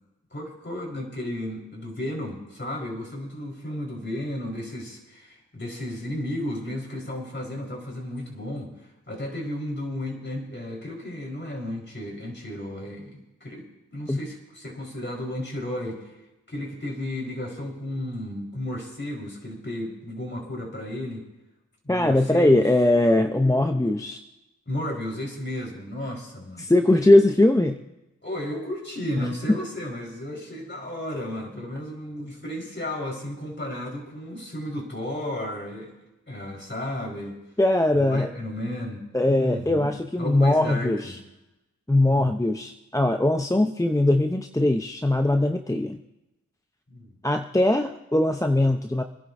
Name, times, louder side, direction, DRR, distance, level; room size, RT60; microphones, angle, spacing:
voice 1, 0.3-8.7 9.1-16.1 16.5-21.2 21.8-22.6 24.7-26.7 28.2-35.9 36.3-37.4 37.9-39.9 40.2-41.1 42.0-42.4 46.9-47.1, left 1 dB, 35° left, -1 dB, 4.5 m, -33 dB
voice 2, 21.9-24.2 26.6-27.8 29.5-29.6 37.6-38.3 39.1-41.1 41.9-46.0 47.2-49.0, left 1 dB, 10° left, 5 dB, 0.8 m, -21 dB
26.5 x 11.0 x 2.7 m, 0.97 s
cardioid pair, 45°, 32 cm